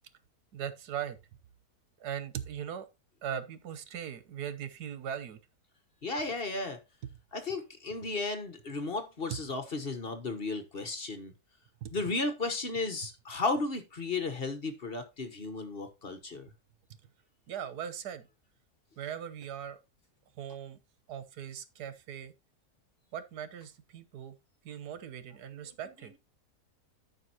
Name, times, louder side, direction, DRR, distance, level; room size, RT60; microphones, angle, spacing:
voice 1, 0.5-1.2 2.0-2.9 3.2-5.4 11.8-11.9 17.5-18.2 19.0-19.8 20.4-20.8 21.1-22.3 23.1-24.4 24.6-26.1, right 9 dB, 85° right, 1.5 m, -39 dB
voice 2, 6.0-6.8 7.3-11.3 11.9-16.5 25.6-25.7, left 3 dB, 40° left, 1.2 m, -34 dB
13.5 x 5.4 x 2.9 m
omnidirectional pair, 1.6 m